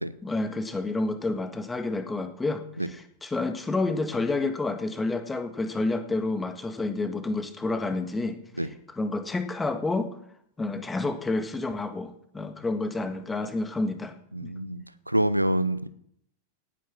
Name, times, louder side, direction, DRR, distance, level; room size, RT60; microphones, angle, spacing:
voice 1, 0.2-8.4 9.0-10.1 10.6-14.1 14.4-14.5, left 2 dB, 10° left, 9 dB, 1.7 m, -29 dB
voice 2, 14.3-15.9, right 1 dB, 85° right, 14 dB, 0.8 m, -26 dB
18.0 x 9.5 x 6.1 m, 0.70 s
figure-of-eight pair, 90°, 0 cm